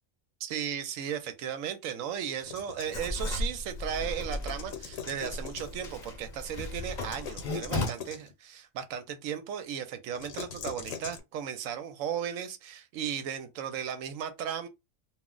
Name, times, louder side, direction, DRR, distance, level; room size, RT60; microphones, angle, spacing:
voice 1, 0.4-14.7, right 9 dB, 75° right, 0.9 m, -36 dB
sound 1, 2.4-3.1 4.0-5.9 6.8-8.3 10.1-11.2, left 7 dB, 70° left, 1.0 m, -42 dB
Writing, 2.9-7.9, left 2 dB, 45° left, 0.7 m, -35 dB
2.4 x 2.0 x 3.6 m
omnidirectional pair, 1.4 m